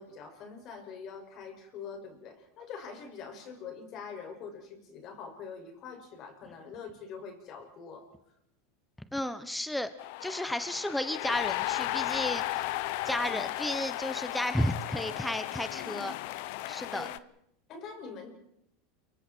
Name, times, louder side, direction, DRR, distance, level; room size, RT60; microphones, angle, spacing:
voice 1, 0.0-8.1 13.2-13.4 14.1-14.3 16.9-17.1 17.7-18.3, left 5 dB, 45° left, 3 dB, 6.5 m, -44 dB
voice 2, 9.1-9.9 10.2-12.7 13.0-16.1 16.7-17.1, left 1 dB, 5° left, 11 dB, 1.1 m, -33 dB
sound 1, 10.0-17.2, left 17 dB, 65° left, 0.8 m, -35 dB
29.5 x 24.0 x 4.6 m, 0.75 s
supercardioid pair, 130°, 0 cm